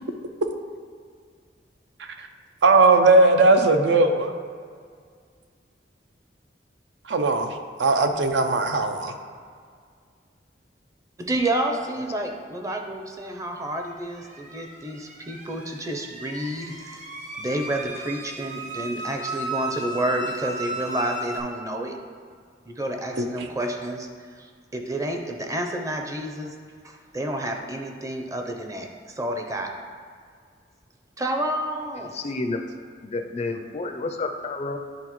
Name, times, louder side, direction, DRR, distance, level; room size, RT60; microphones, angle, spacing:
voice 1, 2.6-4.3 7.1-9.1 23.2-23.5, right 3 dB, 75° right, 6 dB, 0.5 m, -19 dB
voice 2, 11.2-17.0 17.4-22.0 22.7-26.5 26.8-28.9 29.1-29.7 31.2-32.2, right 1 dB, 20° right, 3 dB, 0.6 m, -29 dB
sound 1, 13.8-21.4, right 2 dB, 45° right, 1.1 m, -35 dB
voice 3, 32.0-32.6 33.0-34.8, left 3 dB, 35° left, 6 dB, 0.4 m, -30 dB
10.5 x 3.7 x 3.0 m, 2.1 s
head